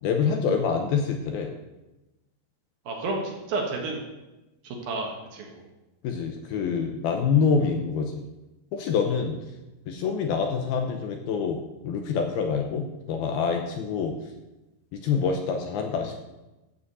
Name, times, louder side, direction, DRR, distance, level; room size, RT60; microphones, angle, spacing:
voice 1, 0.0-1.5 6.0-8.2 8.7-9.4 9.9-11.6 11.8-14.1 14.9-16.2, left 6 dB, 75° left, 4 dB, 2.4 m, -26 dB
voice 2, 2.9-4.0 4.6-5.6, right 3 dB, 60° right, 1 dB, 3.0 m, -31 dB
14.0 x 5.1 x 8.2 m, 1.0 s
omnidirectional pair, 5.2 m